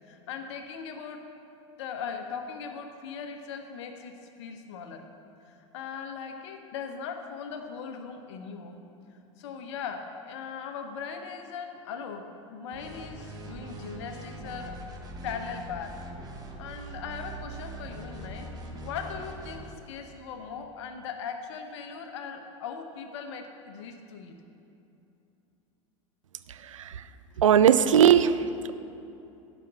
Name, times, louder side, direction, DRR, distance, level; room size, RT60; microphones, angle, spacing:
voice 1, 0.1-1.3 1.8-5.1 5.5-8.8 9.1-15.0 15.2-16.0 16.6-18.5 18.8-24.3, left 6 dB, 60° left, 5 dB, 1.2 m, -39 dB
sound 1, 12.7-19.8, right 2 dB, 25° right, 1.4 m, -42 dB
voice 2, 26.5-27.0 27.4-28.7, right 9 dB, 80° right, 13 dB, 0.5 m, -20 dB
11.0 x 5.4 x 7.5 m, 2.8 s
figure-of-eight pair, 85°, 16 cm